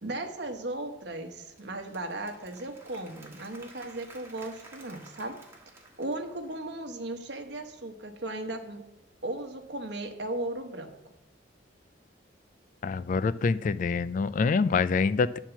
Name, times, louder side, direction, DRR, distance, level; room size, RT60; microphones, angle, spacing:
voice 1, 0.0-5.4 6.0-8.9 9.2-10.9, right 2 dB, 60° right, 5 dB, 1.1 m, -36 dB
Applause / Crowd, 1.4-6.7, right 2 dB, 15° right, 1.4 m, -53 dB
voice 2, 12.8-15.4, left 4 dB, 45° left, 15 dB, 0.3 m, -26 dB
9.7 x 4.5 x 7.0 m, 0.88 s
head